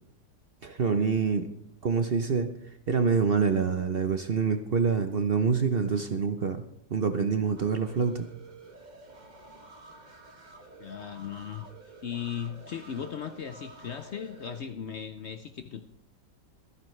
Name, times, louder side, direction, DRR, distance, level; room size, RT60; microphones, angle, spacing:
voice 1, 0.6-1.5 1.8-2.5 2.9-6.6 6.9-8.3, right 5 dB, 50° right, 8 dB, 0.7 m, -26 dB
sound 1, 7.6-14.6, right 3 dB, 30° right, 1.2 m, -50 dB
voice 2, 10.8-11.7 12.0-15.9, left 8 dB, 70° left, 9 dB, 0.6 m, -37 dB
25.5 x 9.6 x 3.2 m, 0.72 s
omnidirectional pair, 1.9 m